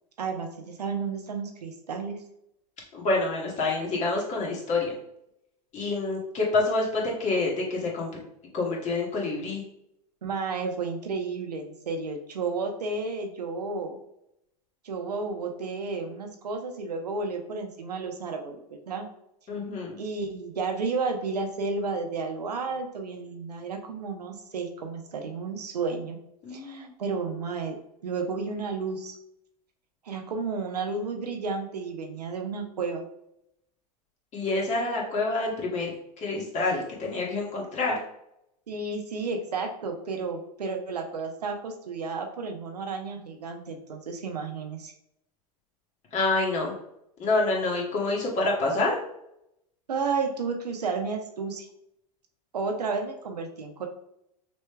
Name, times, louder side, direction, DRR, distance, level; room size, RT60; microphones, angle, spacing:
voice 1, 0.2-2.2 10.2-14.0 14.8-19.1 20.0-26.2 26.5-27.8 28.0-29.2 30.0-33.0 38.7-44.9 49.9-51.7 52.5-53.9, right 4 dB, 85° right, 4 dB, 0.8 m, -32 dB
voice 2, 2.9-4.9 5.7-8.1 8.5-9.6 19.5-20.0 26.4-26.9 34.3-35.9 36.2-38.0 46.1-46.7 47.2-49.0, left 3 dB, 35° left, -2 dB, 1.7 m, -27 dB
6.0 x 3.3 x 2.2 m, 0.79 s
hypercardioid pair, 90°, 20 cm